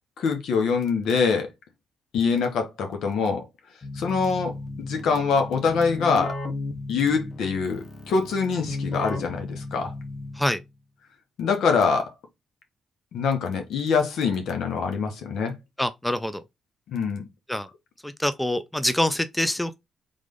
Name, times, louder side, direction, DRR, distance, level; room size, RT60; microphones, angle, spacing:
voice 1, 0.2-1.5 2.1-3.5 3.9-6.4 6.9-9.9 11.4-12.1 13.1-15.6 16.9-17.3, left 5 dB, 75° left, 1.2 m, -24 dB
Keyboard (musical), 3.8-10.7, left 2 dB, 40° left, 1.1 m, -35 dB
voice 2, 15.8-16.4 17.5-17.7 18.0-19.7, left 1 dB, 10° left, 0.5 m, -25 dB
3.7 x 3.3 x 3.8 m
supercardioid pair, 60°, 0 cm